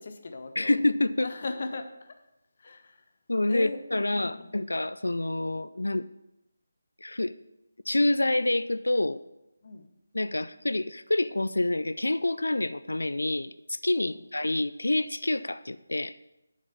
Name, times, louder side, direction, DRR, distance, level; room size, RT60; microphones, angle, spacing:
voice 1, 0.0-0.8 1.2-2.1 2.6-3.0 3.5-4.5 9.6-9.9 13.9-14.2, left 3 dB, 45° left, 7 dB, 0.8 m, -38 dB
voice 2, 0.6-1.3 3.3-6.1 7.0-7.3 7.9-9.2 10.1-16.1, left 2 dB, 70° left, 14 dB, 0.3 m, -27 dB
6.4 x 5.2 x 6.9 m, 0.91 s
figure-of-eight pair, 155°, 0 cm